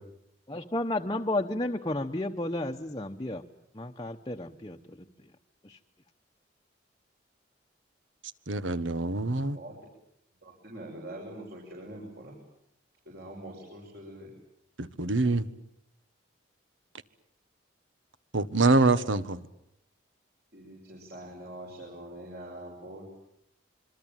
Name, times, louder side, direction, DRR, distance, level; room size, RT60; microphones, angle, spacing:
voice 1, 0.5-3.4 3.7-5.0 5.6-5.8, left 1 dB, 20° left, 1.0 m, -32 dB
voice 2, 8.5-9.6 14.8-15.5 18.3-19.4, right 3 dB, 80° right, 1.5 m, -25 dB
voice 3, 10.4-12.3 13.0-14.3 20.5-23.1, right 1 dB, 55° right, 6.6 m, -44 dB
26.5 x 24.0 x 9.1 m
head